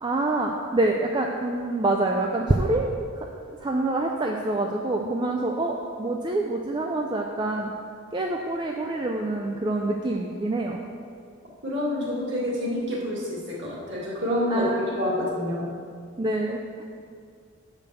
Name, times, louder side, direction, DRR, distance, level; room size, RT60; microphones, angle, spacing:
voice 1, 0.0-7.7 8.1-10.8 14.5-14.8 16.2-16.8, right 2 dB, 20° right, 1 dB, 0.4 m, -26 dB
voice 2, 5.0-5.3 11.6-15.7, left 1 dB, 50° right, -5 dB, 2.2 m, -28 dB
7.7 x 5.2 x 6.8 m, 2.2 s
head